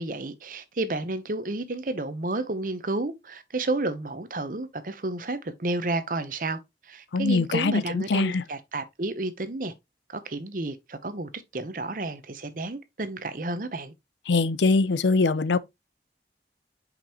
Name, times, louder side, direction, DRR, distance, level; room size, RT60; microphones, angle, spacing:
voice 1, 0.0-6.6 6.9-9.7 10.1-13.9, right 2 dB, 50° right, 0.8 m, -31 dB
voice 2, 7.1-8.4 14.3-15.6, left 3 dB, 85° left, 0.5 m, -23 dB
6.1 x 5.3 x 2.9 m
head